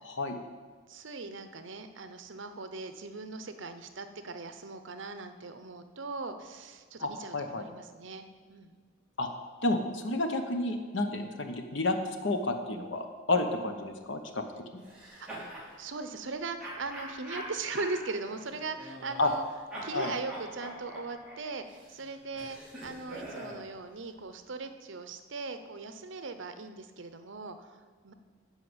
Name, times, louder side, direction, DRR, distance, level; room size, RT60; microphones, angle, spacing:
voice 1, 0.0-0.4 7.0-7.6 9.2-9.3 9.6-12.0 12.2-14.4 14.7-14.8 19.2-19.3 19.9-20.1, left 2 dB, 70° left, 5 dB, 1.1 m, -30 dB
voice 2, 0.9-8.7 15.2-15.5 15.8-19.4 19.8-28.1, right 3 dB, 70° right, 9 dB, 0.8 m, -39 dB
sound 1, 14.8-15.7 16.6-19.4 19.7-23.6, right 1 dB, 5° right, 2.5 m, -43 dB
12.0 x 4.8 x 8.0 m, 1.5 s
head